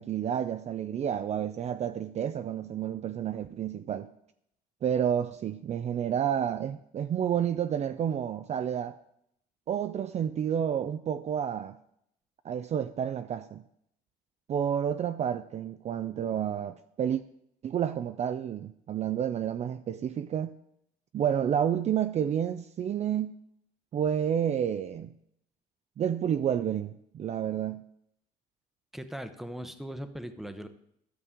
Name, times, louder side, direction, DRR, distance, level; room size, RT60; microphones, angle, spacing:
voice 1, 0.0-4.1 4.8-9.0 9.7-11.8 12.4-13.6 14.5-17.2 17.6-20.6 21.1-23.3 23.9-25.1 26.0-27.8, right 9 dB, 40° right, 0.4 m, -30 dB
voice 2, 28.9-30.7, equal, ahead, 0.8 m, -39 dB
12.5 x 6.7 x 3.7 m
cardioid pair, 110°, 17 cm